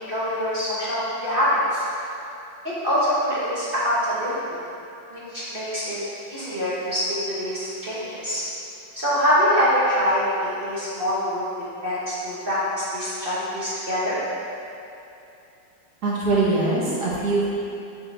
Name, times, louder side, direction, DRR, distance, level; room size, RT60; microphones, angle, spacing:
voice 1, 0.1-1.8 2.8-4.4 5.1-6.0 6.3-8.4 8.9-11.4 11.8-14.2, equal, 35° right, -10 dB, 1.2 m, -24 dB
voice 2, 16.0-17.5, right 2 dB, 55° right, -7 dB, 1.6 m, -22 dB
7.7 x 4.4 x 3.4 m, 2.7 s
omnidirectional pair, 2.0 m